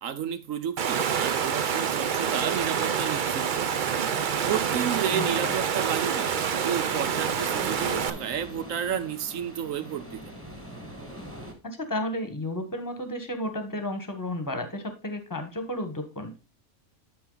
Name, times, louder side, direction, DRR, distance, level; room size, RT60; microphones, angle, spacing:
voice 1, 0.0-3.7 4.4-6.3 6.6-10.2, right 8 dB, 70° right, 12 dB, 1.1 m, -31 dB
Water, 0.8-8.1, right 7 dB, 55° right, 0.5 m, -27 dB
sound 1, 1.8-11.5, equal, 10° right, 1.6 m, -44 dB
voice 2, 5.1-5.6 11.9-16.4, left 1 dB, 15° left, 7 dB, 1.2 m, -32 dB
12.0 x 4.2 x 3.9 m, 0.30 s
omnidirectional pair, 1.5 m